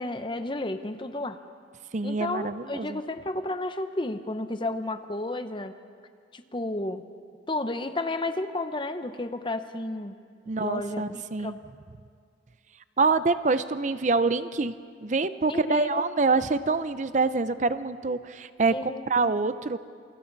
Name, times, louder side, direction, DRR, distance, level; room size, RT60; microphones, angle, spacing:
voice 1, 0.0-1.4 2.0-5.7 6.3-7.0 7.5-10.2 10.6-11.0 11.4-11.6 15.5-16.0 18.7-19.3, left 2 dB, 25° left, 9 dB, 0.8 m, -32 dB
voice 2, 1.9-3.0 10.5-11.6 13.0-14.7 15.0-19.8, right 3 dB, 40° right, 12 dB, 0.6 m, -26 dB
28.5 x 24.5 x 4.0 m, 2.2 s
head